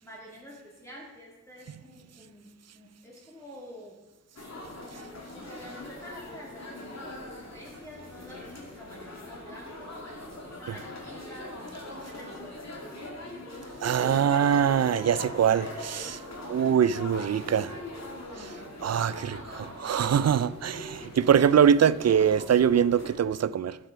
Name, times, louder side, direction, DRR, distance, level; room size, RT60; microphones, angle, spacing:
voice 1, 0.0-4.0 5.3-10.0 10.4-11.6 12.0-12.7, left 1 dB, 10° left, 2.0 m, -48 dB
sound 1, 4.3-23.1, left 1 dB, 55° left, 2.4 m, -41 dB
voice 2, 13.8-16.2 16.5-17.8 18.4-18.5 18.8-23.8, right 8 dB, 55° right, 0.4 m, -23 dB
12.0 x 6.0 x 5.0 m
cardioid pair, 55°, 32 cm